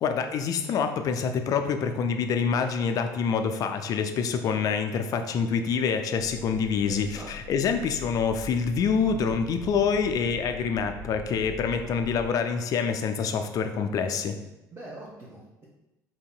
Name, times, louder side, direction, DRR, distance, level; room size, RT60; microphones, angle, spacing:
voice 1, 0.0-14.4, left 6 dB, 40° left, 7 dB, 0.4 m, -26 dB
sound 1, 6.2-12.3, right 1 dB, 85° right, 0.4 m, -42 dB
voice 2, 6.7-7.3 14.7-15.7, right 1 dB, 25° right, -5 dB, 0.8 m, -43 dB
5.2 x 2.8 x 2.2 m, 0.95 s
figure-of-eight pair, 60°, 9 cm